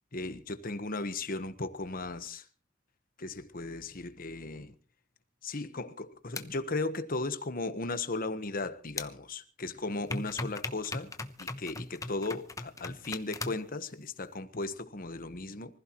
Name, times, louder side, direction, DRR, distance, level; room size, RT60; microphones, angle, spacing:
voice 1, 0.1-2.5 3.2-4.7 5.4-11.1 11.4-15.8, left 3 dB, 45° left, 1.3 m, -36 dB
sound 1, 6.4-6.5 9.0-9.1 10.1-13.7, left 2 dB, 15° left, 0.9 m, -38 dB
25.5 x 15.5 x 3.1 m
head